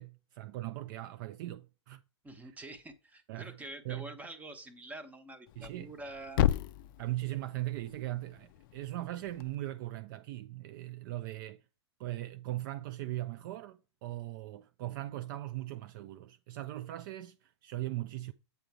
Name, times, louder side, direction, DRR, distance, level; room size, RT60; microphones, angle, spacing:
voice 1, 0.0-2.0 3.3-3.6 3.8-4.1 5.6-5.9 7.0-11.6 12.0-18.3, right 16 dB, 45° right, 0.4 m, -39 dB
voice 2, 2.2-6.4, right 2 dB, 10° right, 1.0 m, -46 dB
Thump thud, 5.5-9.6, left 13 dB, 45° left, 0.4 m, -35 dB
8.3 x 3.7 x 4.6 m
hypercardioid pair, 110°, 15 cm